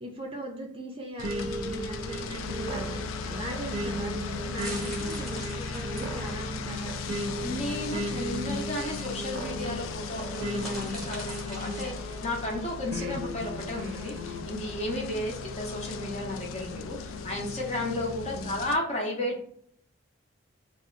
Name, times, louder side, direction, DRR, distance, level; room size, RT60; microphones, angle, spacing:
voice 1, 0.0-7.0 18.1-18.6, right 1 dB, 25° right, 1 dB, 0.4 m, -39 dB
sound 1, 1.2-18.8, left 4 dB, 80° left, 0.3 m, -37 dB
sound 2, 1.2-12.3 12.9-14.4, right 1 dB, 85° right, 0.5 m, -36 dB
sound 3, 4.6-14.1, equal, ahead, 0.8 m, -45 dB
voice 2, 7.4-19.5, left 1 dB, 35° left, 0 dB, 0.7 m, -33 dB
2.6 x 2.0 x 3.8 m, 0.63 s
head